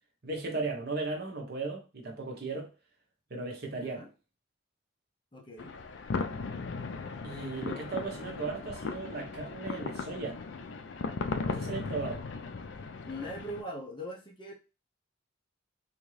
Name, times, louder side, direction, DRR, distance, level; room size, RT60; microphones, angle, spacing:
voice 1, 0.2-2.7 3.3-4.0 7.2-10.4 11.4-12.2, right 3 dB, 50° right, 0.9 m, -36 dB
voice 2, 3.7-4.1 5.3-5.8 7.3-7.9 13.0-14.5, equal, 25° left, 0.8 m, -42 dB
sound 1, 5.6-13.6, left 4 dB, 65° left, 0.4 m, -37 dB
3.6 x 2.7 x 3.2 m
head